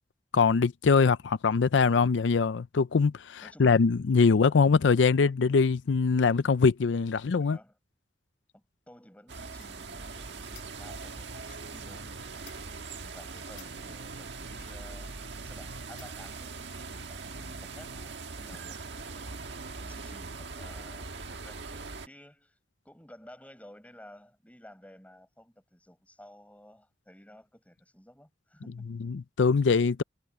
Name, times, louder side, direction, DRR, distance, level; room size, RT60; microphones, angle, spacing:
voice 1, 0.3-7.6 29.1-30.0, left 5 dB, 90° left, 0.5 m, -23 dB
voice 2, 3.4-3.9 7.4-7.8 8.5-12.6 13.0-15.2 15.4-22.6 22.8-29.0, left 1 dB, 10° left, 6.5 m, -54 dB
sound 1, 9.3-22.1, right 4 dB, 75° right, 1.6 m, -41 dB
sound 2, 9.6-16.4, left 10 dB, 50° left, 4.0 m, -59 dB
head